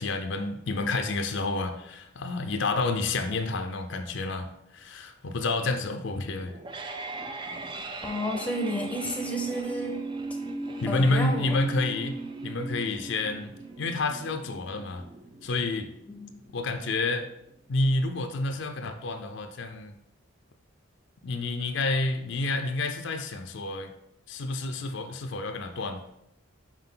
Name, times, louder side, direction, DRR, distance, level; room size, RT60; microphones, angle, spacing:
voice 1, 0.0-6.6 10.8-15.0 15.4-15.9 16.5-17.3 17.7-19.9 21.2-23.9 24.3-26.0, left 2 dB, 60° left, 6 dB, 0.5 m, -29 dB
sound 1, 6.4-17.4, right 2 dB, 25° right, 0.4 m, -38 dB
voice 2, 8.0-10.1 10.8-11.6 16.1-16.3, equal, 5° left, 1 dB, 0.7 m, -31 dB
5.7 x 4.8 x 3.8 m, 0.80 s
head